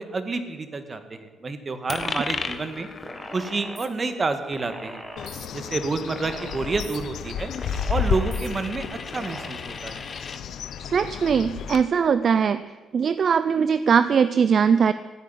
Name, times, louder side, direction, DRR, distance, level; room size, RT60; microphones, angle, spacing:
voice 1, 0.0-2.9 3.3-5.0 5.5-7.5 7.9-8.9 9.1-10.0, right 3 dB, 35° right, 9 dB, 1.8 m, -29 dB
Coin (dropping), 1.9-10.4, left 4 dB, 35° left, 1.3 m, -37 dB
sound 1, 3.0-3.9 4.5-5.5 6.1-7.0 7.6-8.5 9.1-9.5, right 1 dB, 10° right, 2.1 m, -40 dB
Bird, 5.2-11.8, left 7 dB, 75° left, 0.9 m, -32 dB
voice 2, 10.9-12.6 12.9-14.9, right 6 dB, 50° right, 13 dB, 0.5 m, -20 dB
15.0 x 9.5 x 9.7 m, 1.3 s
cardioid pair, 90°, 0 cm